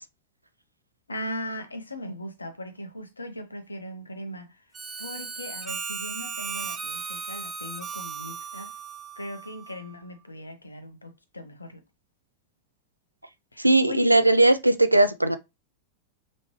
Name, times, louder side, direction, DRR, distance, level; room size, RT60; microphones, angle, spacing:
voice 1, 1.1-4.6 5.0-8.7 9.2-11.8 13.5-14.3, left 1 dB, 80° left, 0.9 m, -39 dB
Harmonica, 4.7-9.9, right 5 dB, 20° right, 0.8 m, -36 dB
voice 2, 13.6-15.4, right 2 dB, 85° right, 0.4 m, -19 dB
5.2 x 3.2 x 3.0 m
figure-of-eight pair, 90°, 0 cm